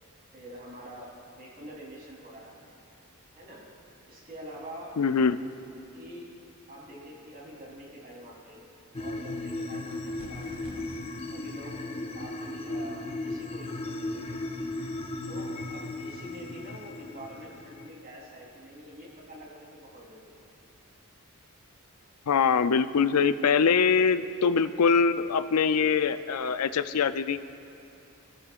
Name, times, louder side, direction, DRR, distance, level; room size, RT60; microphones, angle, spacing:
voice 1, 0.3-2.8 3.3-3.7 4.0-5.0 5.7-6.3 6.7-8.6 8.9-10.9 11.2-11.8 12.1-14.4 15.3-20.4, right 1 dB, 40° right, -4 dB, 3.5 m, -46 dB
voice 2, 5.0-5.4 22.3-27.6, left 6 dB, 90° left, 12 dB, 0.5 m, -23 dB
sound 1, 8.9-17.9, left 2 dB, 25° left, 0.5 m, -36 dB
sound 2, 10.2-11.0, right 1 dB, 75° right, 2.4 m, -46 dB
27.0 x 14.0 x 2.4 m, 2.8 s
head